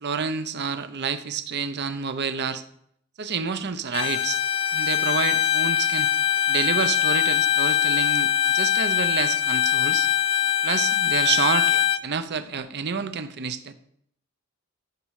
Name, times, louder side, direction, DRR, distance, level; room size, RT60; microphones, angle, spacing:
voice 1, 0.0-2.6 3.2-4.4 4.7-6.2 6.5-10.1 10.6-11.7 12.0-13.7, right 6 dB, 50° right, 0.7 m, -28 dB
Bowed string instrument, 3.9-12.0, left 9 dB, 25° left, 0.4 m, -22 dB
13.5 x 5.3 x 4.8 m
head